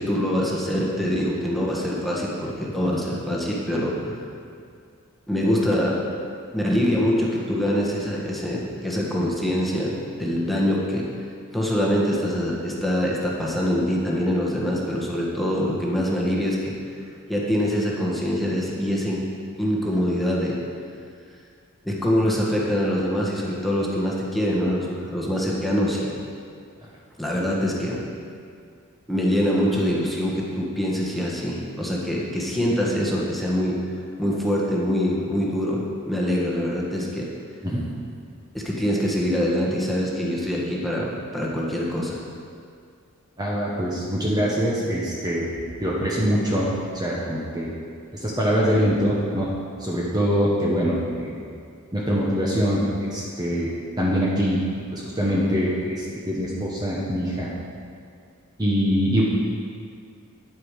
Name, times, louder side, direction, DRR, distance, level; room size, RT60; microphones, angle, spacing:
voice 1, 0.0-3.9 5.3-6.0 6.5-11.0 11.5-16.7 17.3-19.2 19.6-20.6 21.8-26.1 27.2-28.0 29.1-33.8 34.2-37.3 38.5-42.2, equal, ahead, -5 dB, 1.5 m, -24 dB
voice 2, 43.4-45.4 45.8-47.7 48.1-49.5 49.8-51.4 51.9-53.7 54.0-54.6 54.9-57.5 58.6-59.2, equal, 20° right, -5 dB, 1.2 m, -23 dB
10.0 x 8.6 x 4.9 m, 2.3 s
head